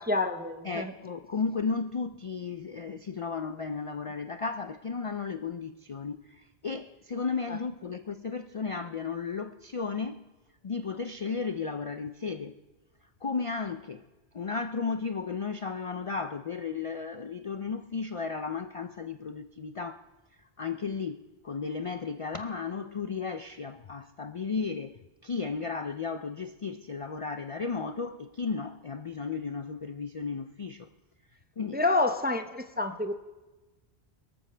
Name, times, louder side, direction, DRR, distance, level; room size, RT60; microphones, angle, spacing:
voice 1, 0.0-0.9 7.5-7.6 31.7-33.1, left 2 dB, 10° right, 0.5 m, -28 dB
voice 2, 0.6-10.3 10.6-12.6 13.2-14.0 14.3-20.1 20.6-30.9 31.6-31.8, left 5 dB, 45° left, 0.4 m, -34 dB
23.0 x 14.0 x 3.4 m
omnidirectional pair, 1.1 m